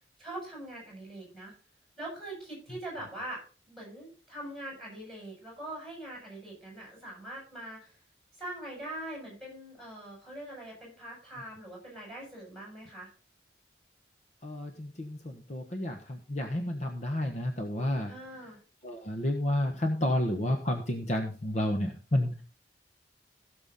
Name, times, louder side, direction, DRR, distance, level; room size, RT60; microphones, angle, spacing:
voice 1, 0.2-1.5 2.0-8.0 8.4-13.1 18.1-18.6, right 1 dB, ahead, -2 dB, 7.8 m, -42 dB
voice 2, 14.4-18.1 18.8-22.4, left 1 dB, 40° left, 4 dB, 1.2 m, -31 dB
16.5 x 7.0 x 4.2 m, 0.38 s
head